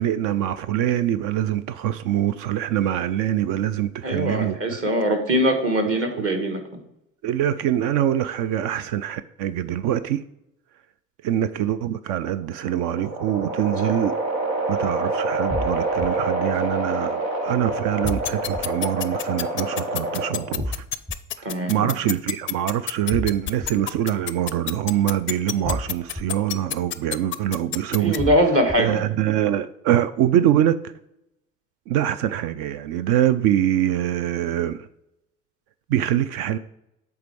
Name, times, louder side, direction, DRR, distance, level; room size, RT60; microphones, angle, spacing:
voice 1, 0.0-4.8 7.2-10.2 11.2-14.1 14.7-20.8 21.4-28.2 28.8-30.8 31.9-34.9 35.9-36.6, right 11 dB, 55° right, 0.5 m, -24 dB
voice 2, 4.0-6.6 13.8-13.9 21.4-21.9 28.0-29.0, right 1 dB, 35° right, 1.6 m, -22 dB
sound 1, 12.4-20.6, right 2 dB, 90° right, 1.0 m, -27 dB
sound 2, 15.5-16.1 18.0-18.6 20.6-21.1 23.1-23.7 25.6-26.2 28.2-28.8, left 1 dB, 5° right, 0.7 m, -29 dB
sound 3, 18.1-28.2, left 14 dB, 30° left, 0.4 m, -27 dB
8.1 x 3.5 x 4.7 m
hypercardioid pair, 55°, 39 cm